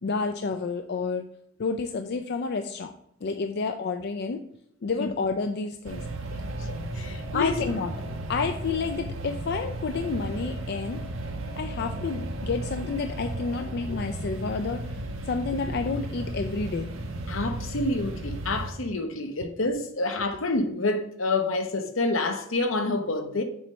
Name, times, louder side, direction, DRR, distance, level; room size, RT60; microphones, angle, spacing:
voice 1, 0.0-1.3 1.6-2.9 3.2-4.4 4.8-6.0 7.3-7.9 8.3-11.0 11.6-15.0 15.2-16.9 19.4-19.5, left 4 dB, 55° left, 0.4 m, -30 dB
sound 1, 5.8-18.7, right 1 dB, 75° right, 1.0 m, -34 dB
voice 2, 6.3-7.6 17.3-23.4, left 2 dB, 75° left, 0.9 m, -28 dB
6.9 x 3.2 x 5.5 m
head